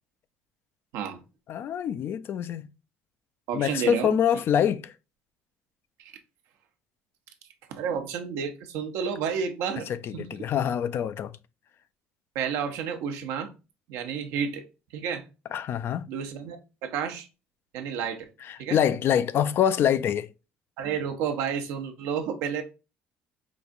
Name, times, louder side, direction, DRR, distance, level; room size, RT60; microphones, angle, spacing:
voice 1, 1.5-2.7 3.5-4.9 10.0-11.3 15.5-16.1 18.5-20.3, left 9 dB, 55° left, 0.3 m, -25 dB
voice 2, 3.5-4.2 7.7-9.9 10.1-10.3 12.3-13.5 13.9-14.6 14.9-15.2 16.1-17.3 17.7-18.3 18.6-18.8 20.8-22.6, right 7 dB, 80° right, 0.7 m, -31 dB
4.9 x 2.4 x 2.5 m
supercardioid pair, 85°, 5 cm